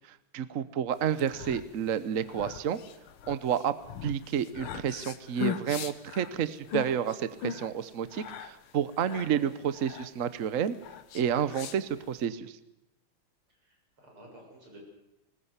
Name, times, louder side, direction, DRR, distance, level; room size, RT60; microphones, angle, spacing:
voice 1, 0.3-2.8 3.3-3.7 4.0-10.7 11.1-12.5, right 8 dB, 50° right, 14 dB, 1.0 m, -30 dB
sound 1, 1.0-12.2, left 9 dB, 75° left, 1.9 m, -40 dB
voice 2, 9.0-9.4 13.6-14.8, right 1 dB, 85° right, -1 dB, 8.2 m, -52 dB
20.5 x 20.0 x 8.1 m, 0.89 s
omnidirectional pair, 2.3 m